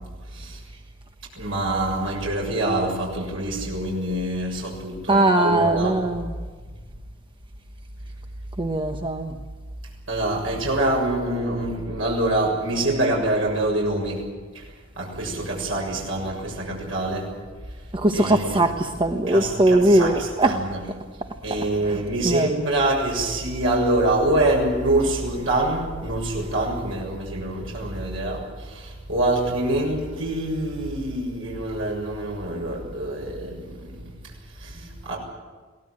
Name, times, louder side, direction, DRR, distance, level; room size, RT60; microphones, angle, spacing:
voice 1, 1.4-6.0 10.1-14.2 14.5-14.7 15.0-17.3 18.1-18.6 19.3-20.8 21.4-34.2 34.6-35.2, right 1 dB, 80° right, -1 dB, 7.1 m, -25 dB
voice 2, 5.1-6.3 8.6-9.3 17.9-20.5 21.9-22.0 22.2-22.6, right 1 dB, 25° right, 5 dB, 1.1 m, -20 dB
23.0 x 18.5 x 8.7 m, 1.4 s
head